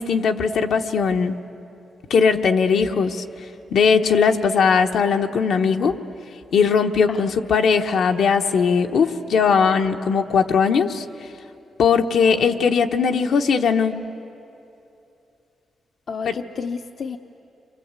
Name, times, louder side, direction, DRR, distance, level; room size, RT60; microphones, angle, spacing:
voice 1, 0.0-1.4 2.1-3.2 3.7-6.0 6.5-11.0 11.8-14.0 16.2-16.3, left 6 dB, 75° left, 4 dB, 1.1 m, -19 dB
voice 2, 12.3-12.7 16.1-17.2, left 5 dB, 55° left, 5 dB, 0.8 m, -31 dB
29.5 x 24.5 x 8.2 m, 2.8 s
cardioid pair, 95°, 0 cm